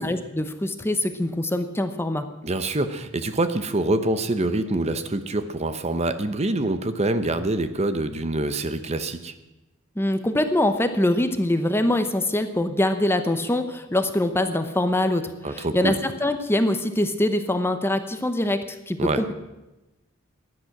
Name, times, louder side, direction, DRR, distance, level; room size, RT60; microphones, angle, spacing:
voice 1, 0.0-2.2 10.0-19.3, left 1 dB, 10° left, 9 dB, 0.8 m, -24 dB
voice 2, 2.4-9.3 15.4-16.0 19.0-19.2, right 2 dB, 30° right, 10 dB, 0.8 m, -25 dB
16.5 x 11.0 x 6.0 m, 0.99 s
head